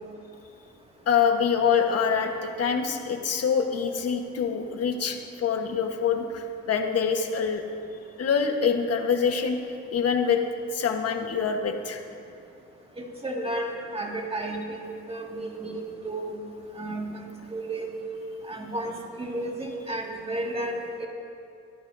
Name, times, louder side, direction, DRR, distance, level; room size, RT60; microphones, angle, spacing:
voice 1, 1.1-7.6 8.2-9.6 9.9-10.4 10.7-12.0, left 6 dB, 55° left, 4 dB, 1.3 m, -25 dB
voice 2, 13.0-16.4 16.8-17.9 18.5-21.1, right 1 dB, 20° right, 0 dB, 2.1 m, -33 dB
23.5 x 11.5 x 2.7 m, 2.6 s
cardioid pair, 90°, 30 cm